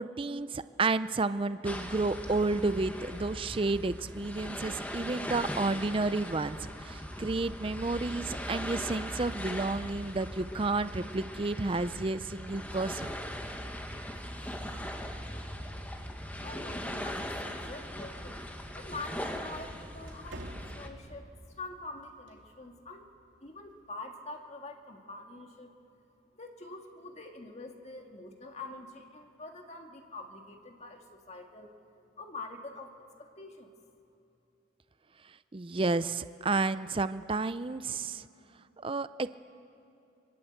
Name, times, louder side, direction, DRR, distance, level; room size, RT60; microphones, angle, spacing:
voice 1, 0.0-13.1 35.5-38.3 38.8-39.3, right 3 dB, 30° right, 13 dB, 0.5 m, -31 dB
sound 1, 1.6-20.9, equal, 10° left, 1.6 m, -40 dB
sound 2, 7.6-8.8 9.2-11.3 13.1-16.1, left 1 dB, 75° left, 7.5 m, -61 dB
sound 3, 15.9-23.9, right 1 dB, 75° right, 3.0 m, -55 dB
voice 2, 16.4-18.4 18.7-21.3 21.6-23.1 23.4-25.7 26.4-31.7 32.2-32.9 33.2-33.7, left 2 dB, 35° left, 3 dB, 1.9 m, -45 dB
26.5 x 24.0 x 7.9 m, 2.9 s
head